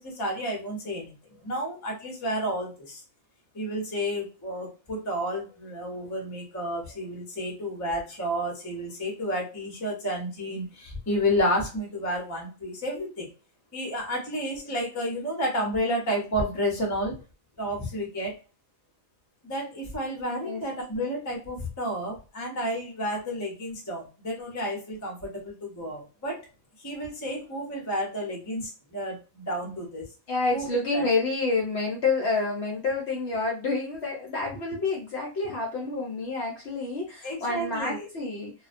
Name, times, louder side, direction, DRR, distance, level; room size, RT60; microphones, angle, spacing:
voice 1, 0.0-3.0 3.5-13.3 13.7-17.1 17.6-18.4 19.4-26.4 26.8-30.1 30.5-31.1 37.2-38.1, equal, 25° left, -1 dB, 0.4 m, -31 dB
voice 2, 30.3-38.5, left 3 dB, 65° left, -1 dB, 0.7 m, -28 dB
2.3 x 2.1 x 2.4 m, 0.32 s
omnidirectional pair, 1.5 m